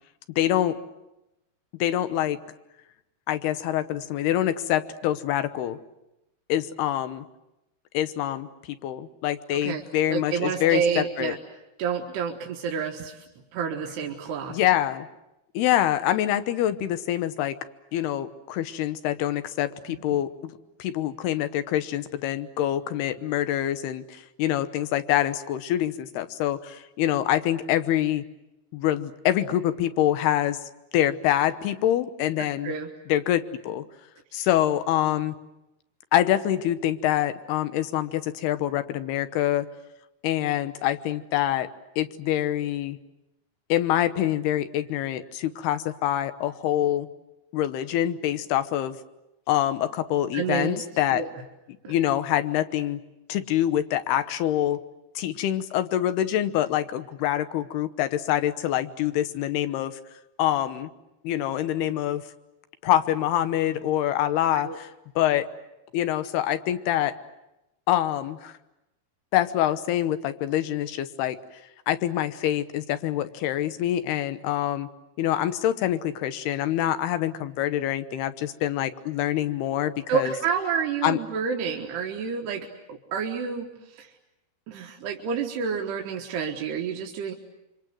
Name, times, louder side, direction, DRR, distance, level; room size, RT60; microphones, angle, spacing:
voice 1, 0.4-0.8 1.8-2.4 3.3-5.8 6.5-7.2 7.9-11.4 14.5-15.1 15.5-17.6 17.9-28.2 28.7-30.6 30.9-32.7 33.1-33.8 34.3-35.3 36.1-39.7 40.2-41.7 42.0-43.0 43.7-47.1 47.5-49.0 49.5-51.2 51.9-53.0 53.3-54.8 55.2-60.0 60.4-60.9 61.2-62.2 62.8-64.9 65.2-65.5 65.9-67.1 67.9-68.5 69.3-71.4 71.9-74.9 75.2-80.3 81.0-81.2, left 12 dB, 80° left, 11 dB, 3.0 m, -25 dB
voice 2, 9.5-9.8 10.1-11.4 11.8-13.3 13.5-14.6 32.4-32.9 34.4-34.5 50.3-50.8 51.1-51.3 51.9-52.0 64.5-64.8 80.1-84.1 84.7-87.3, right 6 dB, 80° right, 1 dB, 3.5 m, -29 dB
27.5 x 24.5 x 7.8 m, 0.93 s
omnidirectional pair, 4.6 m